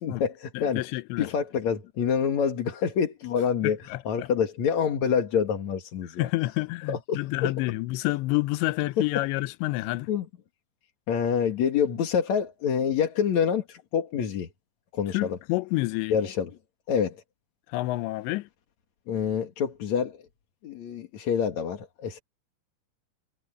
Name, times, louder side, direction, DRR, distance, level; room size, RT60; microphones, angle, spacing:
voice 1, 0.0-0.8 1.2-6.3 6.9-7.5 10.1-10.3 11.1-14.5 14.9-15.4 16.1-16.5 16.9-17.2 19.1-20.2 20.6-22.2, left 7 dB, 50° left, 2.5 m, -27 dB
voice 2, 0.5-1.3 3.6-4.3 6.0-10.1 15.1-16.2 17.7-18.5, left 20 dB, 90° left, 3.0 m, -29 dB
omnidirectional pair, 5.0 m